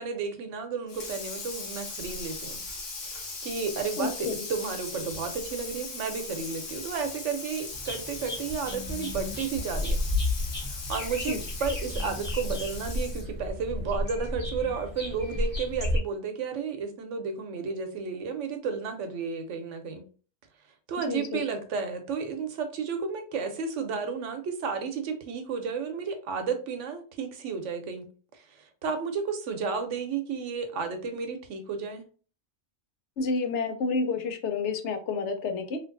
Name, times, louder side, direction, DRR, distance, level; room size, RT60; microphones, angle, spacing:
voice 1, 0.0-2.6 3.0-10.0 10.7-20.0 20.9-28.0 28.4-32.0, right 5 dB, 80° right, 6 dB, 1.0 m, -32 dB
Water tap faucet / Sink (filling or washing), 0.9-13.4, left 3 dB, 90° left, 1.3 m, -39 dB
voice 2, 4.0-4.4 11.3-11.4 21.1-21.4 33.2-35.8, left 4 dB, 75° left, 6 dB, 0.9 m, -29 dB
sound 1, 7.7-16.0, left 2 dB, 10° left, 0.7 m, -32 dB
3.2 x 2.5 x 2.5 m, 0.39 s
omnidirectional pair, 1.2 m